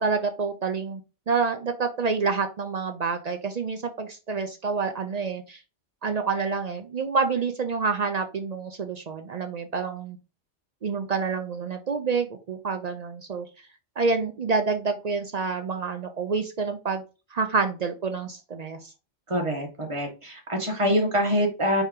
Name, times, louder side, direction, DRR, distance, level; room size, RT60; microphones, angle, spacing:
voice 1, 0.0-1.0 1.3-5.6 6.0-10.2 10.8-13.5 14.0-17.0 17.3-18.9, right 4 dB, 55° right, 6 dB, 0.4 m, -28 dB
voice 2, 19.3-21.8, equal, 25° right, 1 dB, 1.2 m, -25 dB
4.2 x 3.4 x 3.6 m, 0.31 s
omnidirectional pair, 1.2 m